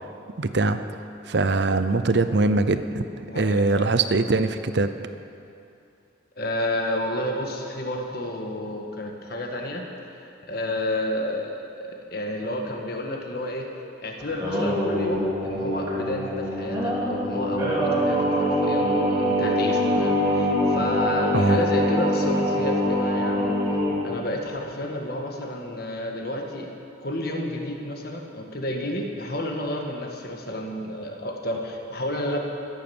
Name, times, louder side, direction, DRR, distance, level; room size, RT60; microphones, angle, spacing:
voice 1, 0.4-0.8 1.3-4.9 21.3-21.6, right 3 dB, 55° right, 10 dB, 0.6 m, -22 dB
voice 2, 3.3-3.9 6.4-9.9 10.1-13.7 14.0-23.6 24.0-26.7 27.0-32.4, left 1 dB, 50° left, 1 dB, 1.7 m, -31 dB
Singing, 14.2-24.0, equal, 15° right, 2.7 m, -24 dB
14.5 x 10.0 x 7.2 m, 2.6 s
head